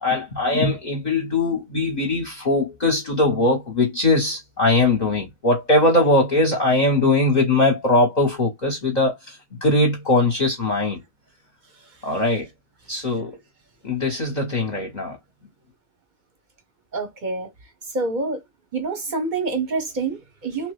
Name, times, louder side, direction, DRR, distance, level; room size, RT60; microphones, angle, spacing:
voice 1, 0.0-11.0 12.0-12.5 12.9-13.4 13.8-15.2, left 2 dB, 35° left, 0.8 m, -21 dB
voice 2, 16.9-17.5 17.9-18.4 18.7-20.7, right 3 dB, 45° right, 0.7 m, -26 dB
3.0 x 2.2 x 3.1 m
omnidirectional pair, 1.5 m